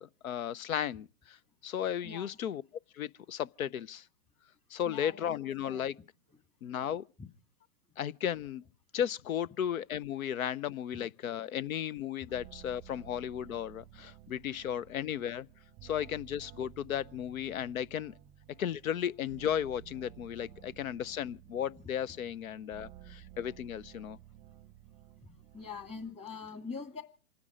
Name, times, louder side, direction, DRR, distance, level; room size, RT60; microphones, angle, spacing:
voice 1, 0.0-1.4 1.6-2.6 2.9-4.0 4.7-6.0 6.6-7.0 8.0-8.6 8.9-15.5 15.8-18.1 18.6-24.2, left 9 dB, 70° left, 0.7 m, -35 dB
voice 2, 4.9-5.3 5.7-5.9 25.2-27.0, left 5 dB, 15° left, 2.1 m, -43 dB
sound 1, 12.3-26.1, right 12 dB, 20° right, 0.7 m, -54 dB
27.5 x 9.7 x 5.0 m
hypercardioid pair, 125°, 42 cm